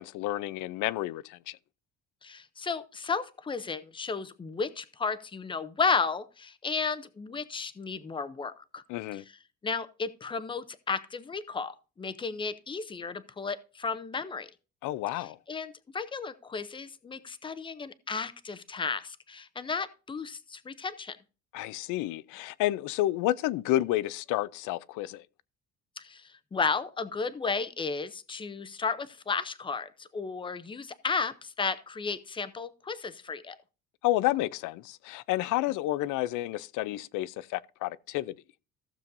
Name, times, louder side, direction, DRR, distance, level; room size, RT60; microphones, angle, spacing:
voice 1, 0.0-1.6 8.9-9.2 14.8-15.4 21.5-25.2 34.0-38.3, left 15 dB, 80° left, 0.6 m, -30 dB
voice 2, 2.2-8.8 9.1-9.2 9.6-14.5 15.5-21.2 26.0-33.6, left 5 dB, 15° left, 0.6 m, -33 dB
15.0 x 7.0 x 2.6 m
cardioid pair, 150°, 31 cm